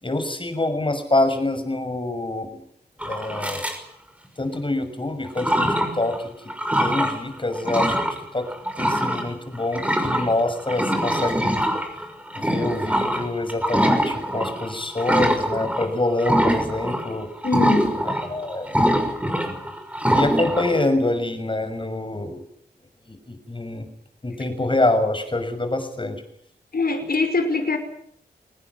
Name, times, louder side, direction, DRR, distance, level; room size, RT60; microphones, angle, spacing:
voice 1, 0.0-2.6 3.0-3.6 4.4-6.2 6.8-8.5 8.8-11.6 12.3-17.3 18.3-18.7 19.4-19.6 20.0-22.5 23.1-23.9 24.2-26.2, left 2 dB, 30° left, 8 dB, 6.2 m, -25 dB
sound 1, 3.0-3.8 4.5-4.6 5.3-6.2 6.5-7.2 7.5-8.2 8.5-15.9 16.2-17.1 17.4-20.8, equal, 5° right, 6.1 m, -23 dB
voice 2, 17.4-18.0 26.7-27.8, left 3 dB, 60° left, 6 dB, 5.4 m, -22 dB
24.5 x 19.5 x 9.6 m, 0.67 s
wide cardioid pair, 100°, 18 cm